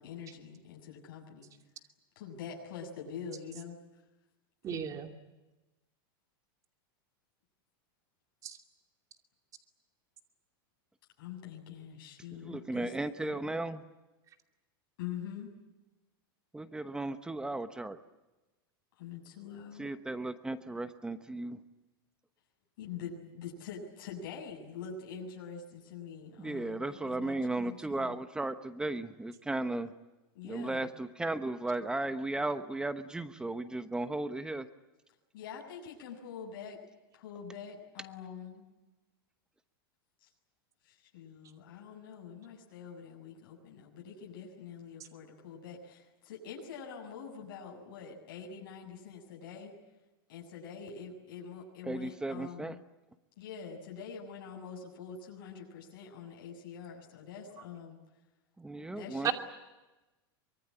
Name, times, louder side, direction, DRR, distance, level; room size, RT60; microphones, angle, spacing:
voice 1, 0.0-1.5 2.2-3.8 11.2-12.9 13.2-13.5 15.0-15.5 19.0-20.0 22.8-28.2 30.3-30.9 35.3-36.8 37.1-38.6 40.8-49.7 50.3-52.8 53.4-58.0 58.9-59.3, left 7 dB, 65° left, -1 dB, 7.3 m, -45 dB
voice 2, 4.6-5.1 8.4-8.5 59.2-59.3, right 9 dB, 25° right, 6 dB, 2.6 m, -32 dB
voice 3, 12.4-13.8 16.5-18.0 19.8-21.6 26.4-29.9 30.4-34.7 51.9-52.7 58.6-59.3, right 2 dB, 5° right, 11 dB, 1.0 m, -35 dB
24.5 x 22.5 x 9.9 m, 1.1 s
supercardioid pair, 150°, 12 cm